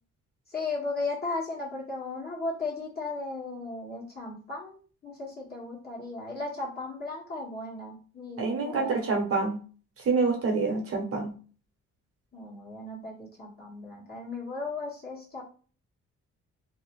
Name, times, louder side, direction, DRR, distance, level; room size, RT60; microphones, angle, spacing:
voice 1, 0.5-8.9 12.3-15.4, left 3 dB, 30° left, -5 dB, 1.4 m, -36 dB
voice 2, 8.4-9.6 10.0-11.3, right 4 dB, 50° right, 1 dB, 0.9 m, -27 dB
2.7 x 2.0 x 3.0 m, 0.40 s
cardioid pair, 90°, 30 cm